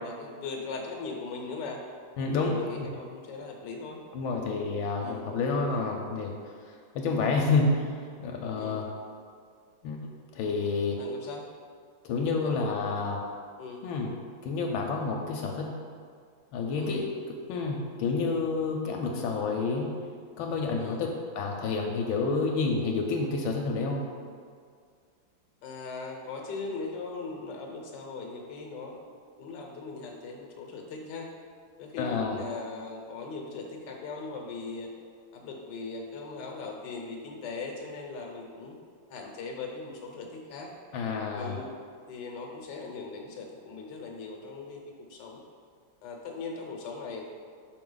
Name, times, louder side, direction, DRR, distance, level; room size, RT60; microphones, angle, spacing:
voice 1, 0.0-1.8 2.4-4.0 5.0-5.3 8.6-8.8 11.0-11.5 12.4-12.8 13.6-13.9 16.7-17.0 20.7-21.0 25.6-29.0 29.4-31.3 31.8-34.9 35.3-38.8 39.1-40.7 41.3-41.7 42.1-45.4 46.0-47.2, left 4 dB, 65° left, 1 dB, 1.4 m, -39 dB
voice 2, 2.2-2.9 4.1-6.3 6.9-7.9 8.2-8.9 9.8-10.0 10.3-11.0 12.0-13.2 13.8-14.1 14.4-15.7 16.5-17.1 17.5-19.9 20.4-21.1 21.3-24.0 32.0-32.4 40.9-41.6, left 4 dB, 85° left, 0 dB, 1.4 m, -29 dB
6.2 x 4.7 x 3.8 m, 2.1 s
omnidirectional pair, 2.1 m